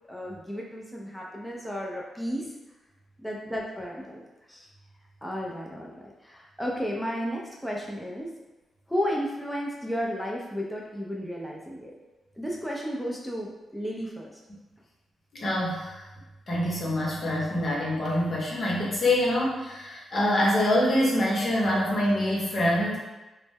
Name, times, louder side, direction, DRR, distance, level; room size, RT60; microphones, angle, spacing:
voice 1, 0.1-2.5 3.2-4.7 5.2-8.3 8.9-11.9 12.4-14.3, equal, ahead, -3 dB, 0.5 m, -33 dB
voice 2, 15.3-16.0 16.5-23.0, left 1 dB, 55° left, -4 dB, 0.8 m, -25 dB
2.1 x 2.0 x 3.3 m, 1.1 s
supercardioid pair, 50°, 0 cm